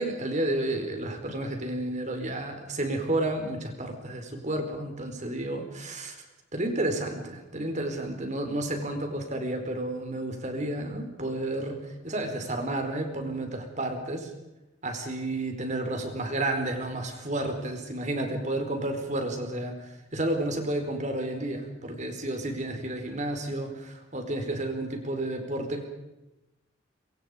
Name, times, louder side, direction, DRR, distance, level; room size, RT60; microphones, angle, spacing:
voice 1, 0.0-6.2 6.5-14.3 14.8-19.8 20.1-25.9, right 1 dB, 35° right, 5 dB, 4.5 m, -31 dB
26.0 x 24.5 x 5.1 m, 0.97 s
head